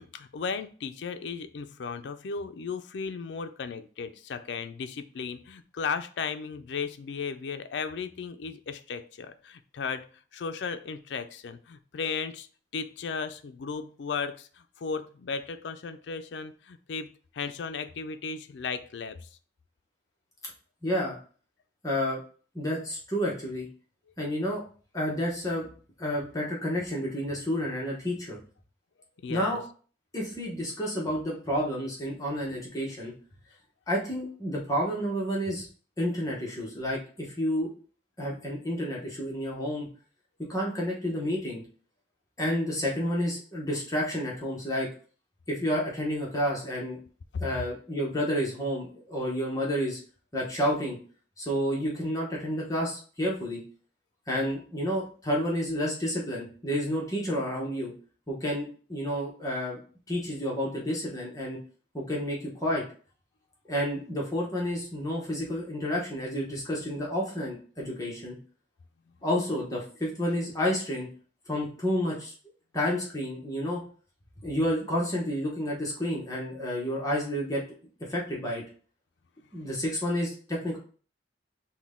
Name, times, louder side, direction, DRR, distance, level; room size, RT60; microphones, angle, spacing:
voice 1, 0.0-10.0 10.3-12.5 12.7-19.3 29.2-29.6 70.3-70.4, left 5 dB, 70° left, 9 dB, 0.4 m, -35 dB
voice 2, 20.8-21.2 21.8-22.2 22.5-23.7 24.2-24.6 24.9-25.7 26.0-28.4 29.3-29.6 30.1-33.1 33.9-35.7 36.0-37.7 38.2-39.9 40.5-41.6 42.4-44.9 45.5-47.0 47.4-50.0 50.3-51.0 51.4-53.6 54.3-57.9 58.3-59.8 60.1-61.6 61.9-62.8 63.7-68.4 69.2-71.1 71.5-72.3 72.7-73.8 74.4-77.6 78.0-78.6 79.5-80.8, equal, 20° left, -3 dB, 1.0 m, -30 dB
5.9 x 2.2 x 3.6 m, 0.41 s
head